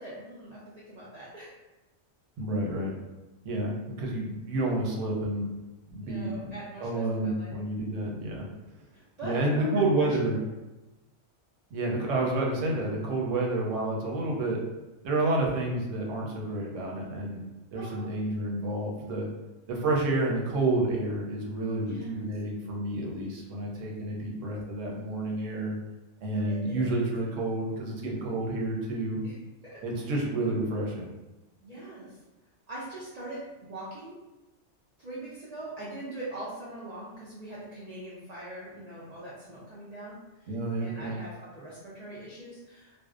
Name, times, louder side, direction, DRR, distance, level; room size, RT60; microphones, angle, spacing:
voice 1, 0.0-1.5 6.0-7.5 8.9-9.7 10.3-10.4 17.7-18.1 21.8-22.1 26.5-27.1 29.2-29.3 29.6-29.8 31.6-32.1 32.7-34.1 35.0-40.5 40.8-42.9, right 1 dB, 55° right, -8 dB, 0.4 m, -42 dB
voice 2, 2.4-2.9 3.4-5.5 5.9-6.4 6.8-8.5 9.2-10.4 11.7-14.6 15.0-17.4 17.7-19.3 19.7-25.7 26.2-29.2 29.8-31.1 40.5-41.1, right 2 dB, 90° right, -1 dB, 1.0 m, -29 dB
2.5 x 2.0 x 2.4 m, 1.0 s
omnidirectional pair, 1.2 m